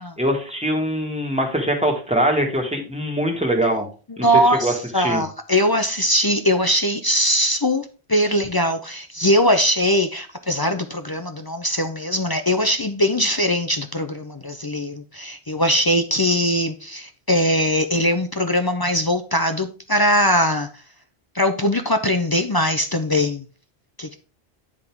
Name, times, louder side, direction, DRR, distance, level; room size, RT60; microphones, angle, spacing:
voice 1, 0.2-3.9 4.2-5.2, equal, 5° right, 1.7 m, -23 dB
voice 2, 4.2-20.7 21.3-23.4 24.0-24.2, equal, 35° left, 0.4 m, -21 dB
9.8 x 3.7 x 4.5 m
omnidirectional pair, 1.1 m